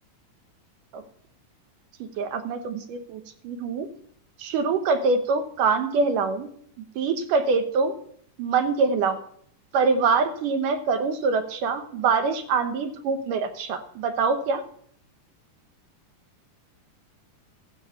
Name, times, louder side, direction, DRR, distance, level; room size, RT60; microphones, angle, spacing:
voice 1, 2.0-3.9 4.4-6.5 7.0-7.9 8.4-9.2 9.7-14.6, right 4 dB, 90° right, 8 dB, 2.8 m, -24 dB
13.5 x 7.2 x 7.0 m, 0.63 s
omnidirectional pair, 3.7 m